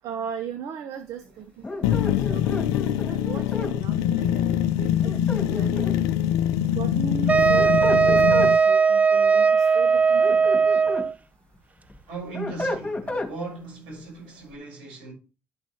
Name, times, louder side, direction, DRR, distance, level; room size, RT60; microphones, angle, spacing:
voice 1, 0.0-1.4 1.7-6.1 6.6-10.4 10.8-10.9, right 7 dB, 65° right, 0.9 m, -37 dB
voice 2, 1.2-2.1 2.7-2.8 10.3-10.8 12.1-15.1, right 3 dB, 80° right, 5.7 m, -39 dB
sound 1, 1.6-3.7 5.0-6.1 7.3-8.5 10.0-11.1 11.5-13.3, left 2 dB, 20° left, 3.3 m, -32 dB
sound 2, 1.8-8.6, left 10 dB, 75° left, 0.4 m, -24 dB
Wind instrument woodwind instrument, 7.3-11.1, right 5 dB, 25° right, 0.8 m, -18 dB
12.0 x 6.1 x 3.2 m
hypercardioid pair, 45°, 6 cm